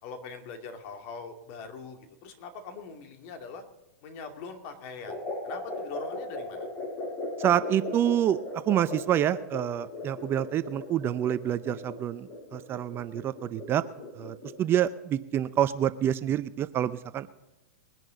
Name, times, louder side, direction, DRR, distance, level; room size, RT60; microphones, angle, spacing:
voice 1, 0.0-3.6 4.0-6.7, left 4 dB, 50° left, 5 dB, 2.5 m, -42 dB
sound 1, 5.1-14.7, left 2 dB, 30° left, 6.1 m, -38 dB
voice 2, 7.4-13.8 14.2-17.3, right 11 dB, 25° right, 14 dB, 0.5 m, -27 dB
21.5 x 10.5 x 3.9 m, 1.0 s
hypercardioid pair, 125°, 9 cm